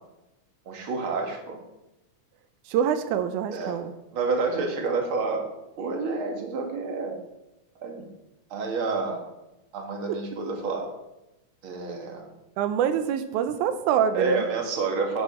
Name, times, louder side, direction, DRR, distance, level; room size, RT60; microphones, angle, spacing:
voice 1, 0.7-1.6 3.5-3.8 4.1-5.4 5.8-7.2 7.8-8.1 8.5-9.2 9.7-10.9 11.6-12.3 14.1-15.2, right 3 dB, 50° right, 1 dB, 2.5 m, -29 dB
voice 2, 2.7-3.9 12.6-14.5, right 9 dB, 90° right, 9 dB, 2.2 m, -25 dB
10.5 x 9.6 x 4.3 m, 0.95 s
omnidirectional pair, 3.4 m